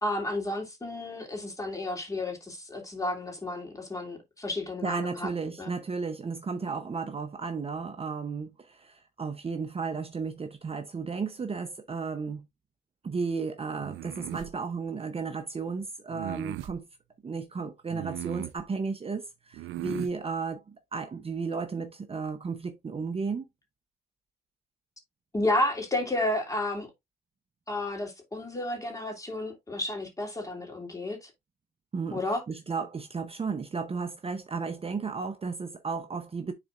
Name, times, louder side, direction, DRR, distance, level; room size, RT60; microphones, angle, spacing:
voice 1, 0.0-5.3 5.6-5.7 25.3-26.9 27.7-31.3 32.1-32.4, left 1 dB, 15° left, 2.8 m, -31 dB
voice 2, 4.8-12.4 13.0-16.9 17.2-23.4 31.9-36.5, right 5 dB, 30° right, 0.8 m, -34 dB
sound 1, 13.8-14.5 16.1-16.8 17.9-18.6 19.5-20.1, right 15 dB, 80° right, 0.4 m, -37 dB
10.0 x 4.1 x 2.5 m
cardioid pair, 90°, 20 cm